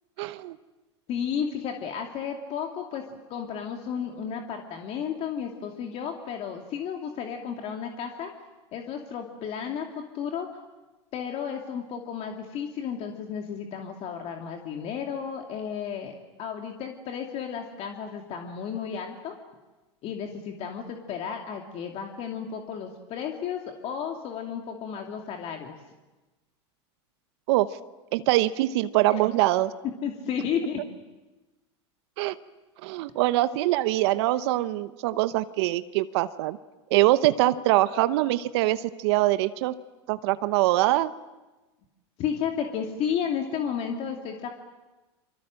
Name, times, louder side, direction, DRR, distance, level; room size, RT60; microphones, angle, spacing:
voice 1, 0.2-0.6 27.5-27.7 28.1-29.7 32.2-32.3 32.8-36.6 36.9-39.7 40.1-41.1, right 16 dB, 65° right, 13 dB, 0.9 m, -23 dB
voice 2, 1.1-3.0 3.3-8.3 8.7-10.5 11.1-19.3 20.0-25.8 29.1-29.2 30.0-30.9 42.2-44.5, left 7 dB, 45° left, 3 dB, 2.6 m, -33 dB
27.5 x 24.5 x 7.7 m, 1.1 s
hypercardioid pair, 110°, 15 cm